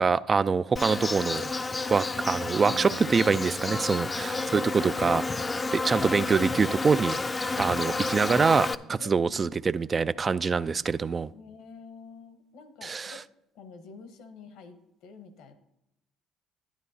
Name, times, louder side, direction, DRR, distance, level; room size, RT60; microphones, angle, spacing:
voice 1, 0.0-1.5 1.9-5.2 5.7-7.1 7.6-11.3 12.8-13.1, right 5 dB, 35° right, 15 dB, 0.3 m, -25 dB
Insect, 0.8-8.8, left 3 dB, 25° left, 0.5 m, -30 dB
sound 1, 2.7-8.4, right 6 dB, 60° right, 1.5 m, -50 dB
voice 2, 3.9-4.4 9.0-9.5 11.3-13.2 13.5-15.5, left 5 dB, 75° left, 9 dB, 1.1 m, -48 dB
11.0 x 9.8 x 2.7 m, 0.87 s
hypercardioid pair, 65°, 0 cm